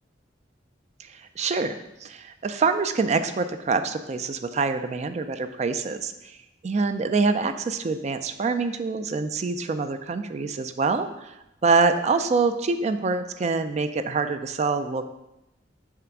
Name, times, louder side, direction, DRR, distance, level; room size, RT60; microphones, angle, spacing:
voice 1, 1.0-6.4 6.6-11.4 11.6-15.1, right 4 dB, 40° right, 9 dB, 0.4 m, -25 dB
7.2 x 3.4 x 5.9 m, 0.92 s
head